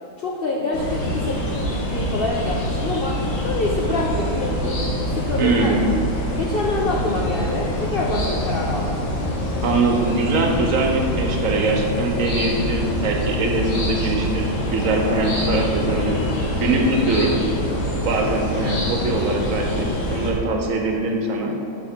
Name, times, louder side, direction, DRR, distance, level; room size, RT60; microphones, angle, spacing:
voice 1, 0.2-4.8 5.1-5.8 6.4-8.9, left 2 dB, 65° left, -1 dB, 0.6 m, -26 dB
sound 1, 0.7-20.3, left 1 dB, 85° left, 1.6 m, -25 dB
voice 2, 5.4-5.8 9.6-16.1 16.6-17.3 18.0-21.5, right 3 dB, 70° right, 1 dB, 1.1 m, -22 dB
6.0 x 5.8 x 4.4 m, 2.6 s
omnidirectional pair, 1.5 m